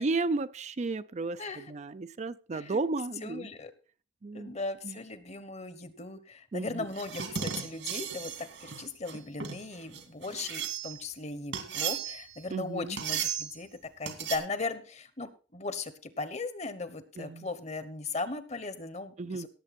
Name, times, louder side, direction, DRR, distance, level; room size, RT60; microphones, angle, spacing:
voice 1, 0.0-3.5 4.2-4.6 4.8-5.0 6.5-6.9 12.5-13.0 17.2-17.5 19.2-19.5, right 3 dB, 40° right, 13 dB, 0.5 m, -33 dB
voice 2, 1.4-1.7 2.5-2.8 3.2-3.7 4.3-19.5, left 3 dB, 35° left, 13 dB, 1.1 m, -38 dB
sound 1, 6.9-11.1 11.5-12.4 13.0-13.6 14.1-14.4, right 7 dB, 80° right, 2.4 m, -35 dB
17.5 x 7.6 x 4.3 m, 0.36 s
head